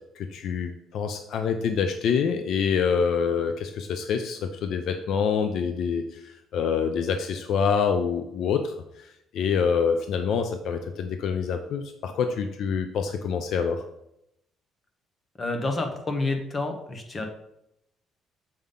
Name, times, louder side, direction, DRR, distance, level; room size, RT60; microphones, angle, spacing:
voice 1, 0.2-13.8, left 6 dB, 55° left, 6 dB, 0.5 m, -26 dB
voice 2, 15.4-17.3, left 2 dB, 20° left, 5 dB, 0.9 m, -29 dB
6.9 x 5.4 x 3.8 m, 0.81 s
cardioid pair, 170°, 0 cm